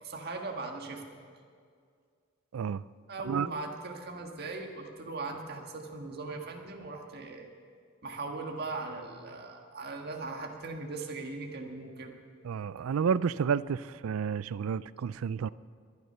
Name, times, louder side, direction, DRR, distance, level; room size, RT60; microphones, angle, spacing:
voice 1, 0.0-1.0 3.1-7.5 8.0-12.1, right 3 dB, 50° right, 2 dB, 1.7 m, -39 dB
voice 2, 2.5-2.8 3.2-3.5 12.4-15.5, right 6 dB, 80° right, 18 dB, 0.4 m, -30 dB
22.5 x 9.6 x 5.7 m, 2.1 s
head